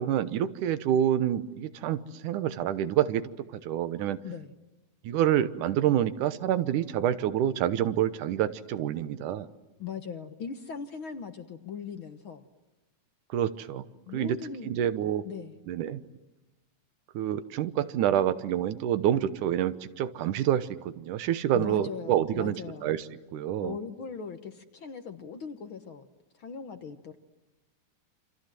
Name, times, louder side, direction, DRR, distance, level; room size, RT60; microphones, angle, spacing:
voice 1, 0.0-3.2 3.5-4.2 5.0-9.5 13.3-13.8 14.1-14.4 14.7-15.3 15.7-16.0 17.1-22.6 22.8-23.0 23.3-23.8, right 10 dB, 85° right, 13 dB, 2.6 m, -27 dB
voice 2, 9.8-12.4 14.1-14.7 15.2-15.6 21.5-22.9 23.6-26.1 26.3-27.2, left 6 dB, 55° left, 8 dB, 1.6 m, -39 dB
28.5 x 26.0 x 7.6 m, 1.1 s
omnidirectional pair, 3.5 m